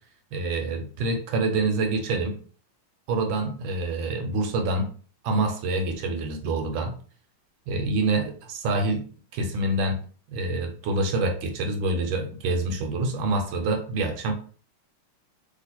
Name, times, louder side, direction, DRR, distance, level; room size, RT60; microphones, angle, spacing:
voice 1, 0.3-2.4 3.1-4.9 5.2-6.9 7.7-9.0 9.3-10.0 10.3-14.3, right 2 dB, 75° right, 5 dB, 1.6 m, -26 dB
3.2 x 3.0 x 4.2 m, 0.42 s
omnidirectional pair, 2.3 m